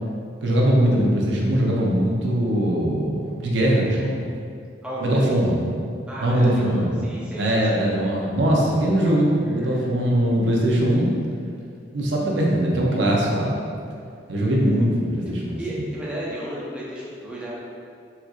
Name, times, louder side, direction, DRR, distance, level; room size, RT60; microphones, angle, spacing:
voice 1, 0.4-4.2 5.0-5.6 6.2-7.1 7.4-11.1 11.9-13.6 14.3-15.9, right 1 dB, 70° right, -3 dB, 0.5 m, -21 dB
voice 2, 4.8-5.3 6.1-7.9 9.6-9.9 15.6-17.6, equal, 5° right, -7 dB, 0.4 m, -33 dB
4.2 x 2.4 x 2.4 m, 2.3 s
head